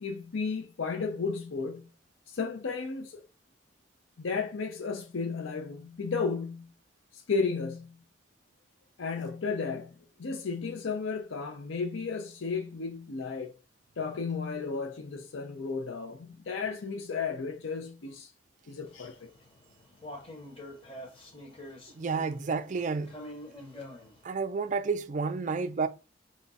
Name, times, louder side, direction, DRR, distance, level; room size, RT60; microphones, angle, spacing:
voice 1, 0.0-1.9 2.3-3.2 4.2-6.7 7.1-8.0 9.0-13.5 14.0-18.3 18.7-19.3, left 4 dB, 75° left, 0.5 m, -33 dB
sound 1, 18.9-24.2, left 1 dB, 30° left, 1.0 m, -47 dB
voice 2, 21.9-23.1 24.2-25.9, right 4 dB, 40° right, 0.4 m, -30 dB
5.1 x 2.3 x 4.0 m
head